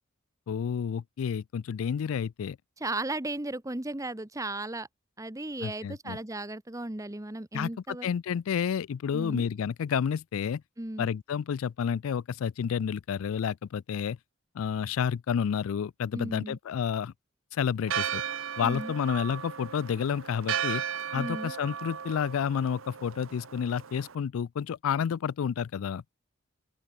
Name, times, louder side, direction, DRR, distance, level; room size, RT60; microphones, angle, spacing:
voice 1, 0.5-2.6 5.6-6.2 7.5-10.6 11.0-14.2 14.6-17.1 17.5-18.2 18.6-20.8 21.1-26.0, left 7 dB, 80° left, 0.4 m, -30 dB
voice 2, 2.8-4.9 5.2-8.1 9.1-9.5 10.8-11.1 16.1-16.6 18.6-18.9 21.1-21.5, right 2 dB, 15° right, 1.0 m, -35 dB
Church bell, 17.9-24.1, right 8 dB, 70° right, 0.8 m, -35 dB
open air
head